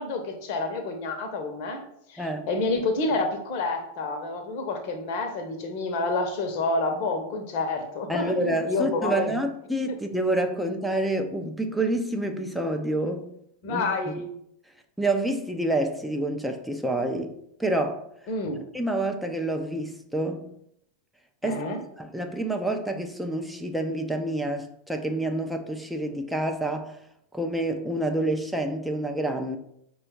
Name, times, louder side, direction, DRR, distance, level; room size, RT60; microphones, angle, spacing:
voice 1, 0.0-1.8 2.1-9.3 9.9-10.0 13.6-14.3 18.3-18.6 21.4-21.8, left 3 dB, 45° left, 0.8 m, -29 dB
voice 2, 2.2-2.5 8.1-13.3 13.7-14.1 15.0-17.3 17.6-18.0 18.7-20.5 21.4-21.6 22.0-27.0 27.3-29.6, right 1 dB, ahead, 0.5 m, -28 dB
5.0 x 2.3 x 4.5 m
figure-of-eight pair, 90°, 0 cm